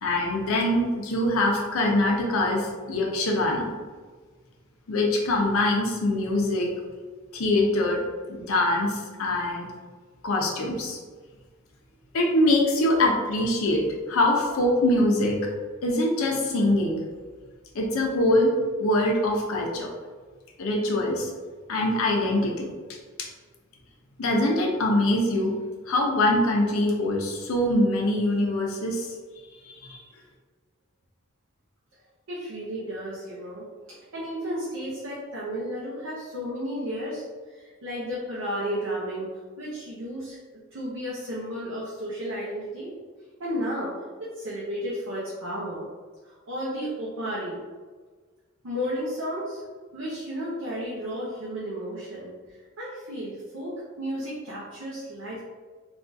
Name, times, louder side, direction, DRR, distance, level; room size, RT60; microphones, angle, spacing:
voice 1, 0.0-3.7 4.9-6.7 7.3-8.0 8.3-9.7 10.2-11.0 12.1-13.8 14.1-15.4 15.8-17.0 17.7-18.5 18.8-19.9 20.6-21.3 21.7-22.7 23.2-23.3 24.2-25.5 25.9-29.1 29.6-30.0, left 1 dB, 85° left, 0 dB, 0.6 m, -23 dB
voice 2, 32.3-39.3 39.6-40.4 40.7-42.9 43.4-43.9 44.2-45.9 46.2-47.6 48.6-49.6 49.9-55.4, equal, 75° right, -7 dB, 0.6 m, -33 dB
3.5 x 2.3 x 2.6 m, 1.5 s
head